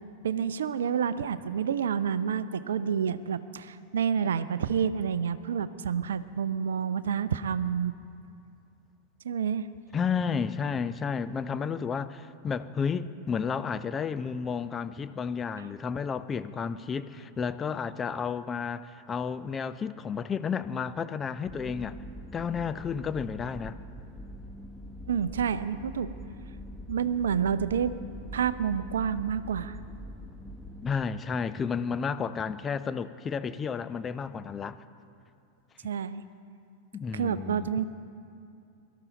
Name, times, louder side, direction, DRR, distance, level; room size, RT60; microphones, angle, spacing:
voice 1, 0.2-7.9 9.2-9.7 25.1-26.1 26.9-27.9 28.3-29.8 35.8-36.2 37.1-37.9, right 7 dB, 65° right, 14 dB, 0.5 m, -29 dB
voice 2, 9.9-22.0 22.3-23.8 30.8-34.8 36.9-37.7, left 6 dB, 20° left, 13 dB, 0.5 m, -32 dB
sound 1, 21.4-30.9, equal, 5° right, 1.1 m, -43 dB
23.0 x 13.0 x 4.0 m, 2.5 s
figure-of-eight pair, 90°, 0 cm